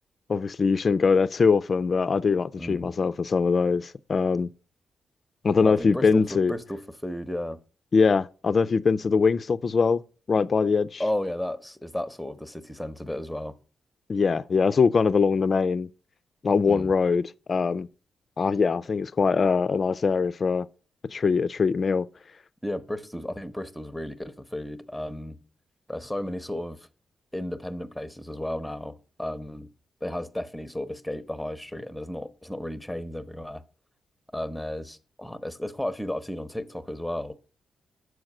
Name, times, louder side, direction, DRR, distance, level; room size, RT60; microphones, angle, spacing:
voice 1, 0.3-4.5 5.4-6.5 7.9-10.0 10.3-11.0 14.1-15.9 16.4-17.2 17.5-17.9 18.4-20.7 21.1-22.1, left 5 dB, 50° left, 0.3 m, -22 dB
voice 2, 2.6-2.9 5.6-7.6 11.0-13.5 16.7-16.9 22.6-25.4 25.9-26.9 27.3-29.7 30.0-33.6 34.3-37.3, left 1 dB, 5° left, 0.7 m, -33 dB
6.4 x 4.7 x 5.9 m
cardioid pair, 80°, 0 cm